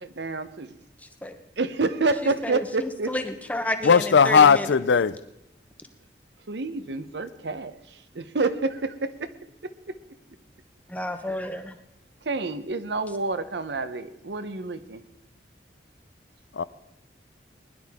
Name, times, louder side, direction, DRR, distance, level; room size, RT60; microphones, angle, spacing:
voice 1, 0.0-0.7 1.6-3.1 6.5-9.3 12.2-15.0, right 3 dB, 75° right, 11 dB, 0.8 m, -28 dB
voice 2, 2.2-4.7 10.9-11.7, left 1 dB, 10° left, 7 dB, 0.9 m, -31 dB
voice 3, 3.8-5.2 16.5-16.6, left 6 dB, 85° left, 17 dB, 0.4 m, -17 dB
20.5 x 11.0 x 3.6 m, 0.85 s
head